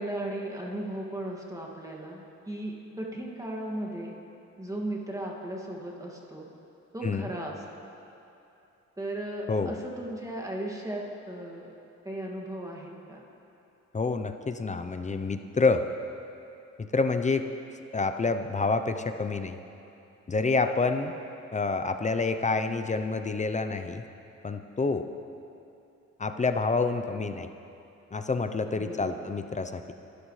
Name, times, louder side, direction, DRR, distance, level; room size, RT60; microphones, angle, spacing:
voice 1, 0.0-4.1 4.6-6.5 6.9-7.6 9.0-11.7 12.0-13.2 28.8-29.3, right 1 dB, 10° right, -2 dB, 2.1 m, -36 dB
voice 2, 13.9-15.9 16.8-17.4 17.9-19.6 20.3-21.1 21.5-24.0 24.4-25.1 26.2-27.5 28.1-29.9, left 3 dB, 25° left, 8 dB, 0.7 m, -28 dB
26.0 x 13.0 x 3.3 m, 2.8 s
cardioid pair, 90°, 30 cm